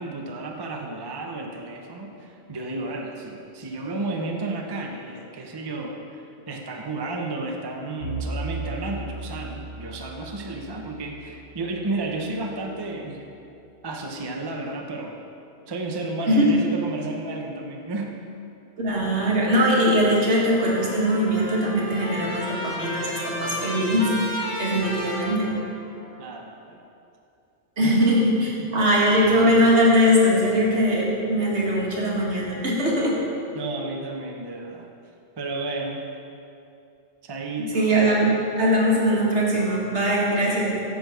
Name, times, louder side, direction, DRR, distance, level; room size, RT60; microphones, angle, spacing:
voice 1, 0.0-13.3 13.8-15.2 15.7-18.2 26.2-26.8 27.8-28.0 33.5-34.9 35.4-36.1 37.2-38.2, right 2 dB, 30° right, 2 dB, 0.5 m, -32 dB
Bowed string instrument, 8.0-12.2, right 2 dB, 65° left, 1.7 m, -36 dB
voice 2, 18.8-25.5 27.8-33.2 37.6-38.3 38.6-40.8, equal, 65° right, -4 dB, 1.8 m, -21 dB
Trumpet, 20.5-26.1, equal, 20° left, 2.1 m, -33 dB
9.5 x 3.9 x 6.7 m, 2.7 s
omnidirectional pair, 1.3 m